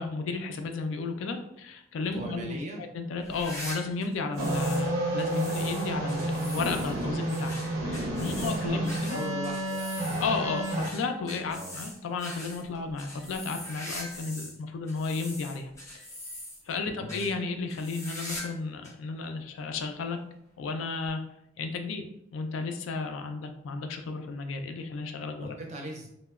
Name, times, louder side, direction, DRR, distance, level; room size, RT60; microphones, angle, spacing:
voice 1, 0.0-7.5 7.8-9.2 10.2-15.7 16.7-20.2 20.6-21.2 21.6-25.6, left 4 dB, 75° left, 6 dB, 0.3 m, -33 dB
voice 2, 2.1-2.8 8.3-10.0 11.5-11.8 16.8-17.2 25.3-26.1, right 1 dB, 35° right, 1 dB, 0.4 m, -40 dB
sound 1, 3.2-4.9 5.2-14.6 14.9-16.7 17.1-17.3 17.7-18.6 18.8-18.9 19.7-19.8 21.1-21.2, left 1 dB, 15° left, 0.6 m, -42 dB
sound 2, 4.4-10.9, right 1 dB, 85° right, 0.6 m, -30 dB
2.8 x 2.0 x 2.3 m, 0.76 s
head